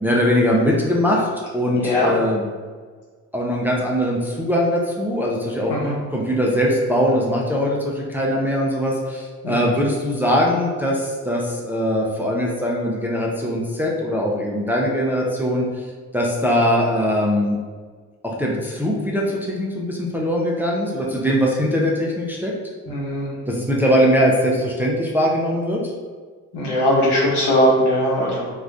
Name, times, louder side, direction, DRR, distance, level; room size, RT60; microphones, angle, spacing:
voice 1, 0.0-2.4 3.3-5.7 6.1-15.9 16.1-17.6 18.2-22.5 23.5-25.8, equal, 5° right, -3 dB, 0.5 m, -21 dB
voice 2, 22.9-23.3 26.5-28.5, equal, 70° left, -5 dB, 1.2 m, -20 dB
2.4 x 2.3 x 3.5 m, 1.5 s
hypercardioid pair, 50°, 42 cm